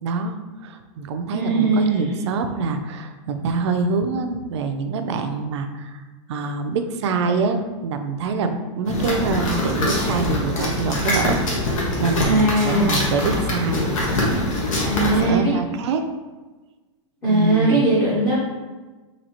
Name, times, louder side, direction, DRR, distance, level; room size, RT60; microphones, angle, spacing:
voice 1, 0.0-6.0 6.3-13.9 15.0-16.0 17.3-17.8, right 4 dB, 60° right, 7 dB, 0.4 m, -25 dB
voice 2, 1.3-2.3 12.2-13.2 14.9-15.5 17.2-18.4, right 2 dB, 10° left, -9 dB, 0.7 m, -20 dB
sound 1, 8.9-15.3, left 1 dB, 85° left, 1.2 m, -23 dB
4.1 x 2.8 x 2.8 m, 1.2 s
supercardioid pair, 170°, 17 cm